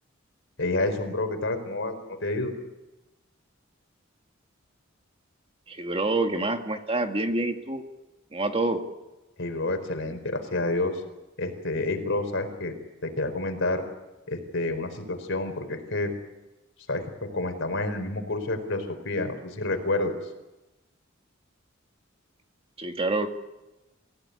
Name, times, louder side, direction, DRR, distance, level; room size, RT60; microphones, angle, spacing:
voice 1, 0.6-2.5 9.4-11.0 11.4-12.7 13.0-13.8 14.3-16.1 16.9-17.0 17.3-20.1, left 2 dB, 65° left, 6 dB, 4.5 m, -29 dB
voice 2, 5.7-7.8 8.3-8.8 22.8-23.3, right 2 dB, 30° right, 5 dB, 2.1 m, -27 dB
27.5 x 16.5 x 9.7 m, 1.0 s
head